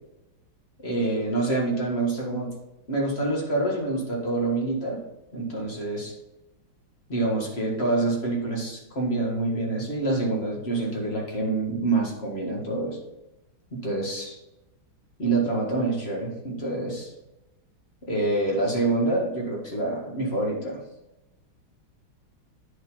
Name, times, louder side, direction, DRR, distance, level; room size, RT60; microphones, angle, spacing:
voice 1, 0.8-2.5 2.9-5.0 5.3-6.1 7.1-13.0 13.7-14.4 15.2-17.1 18.1-20.8, right 2 dB, 30° left, -2 dB, 1.8 m, -26 dB
10.0 x 4.5 x 4.1 m, 0.95 s
omnidirectional pair, 2.2 m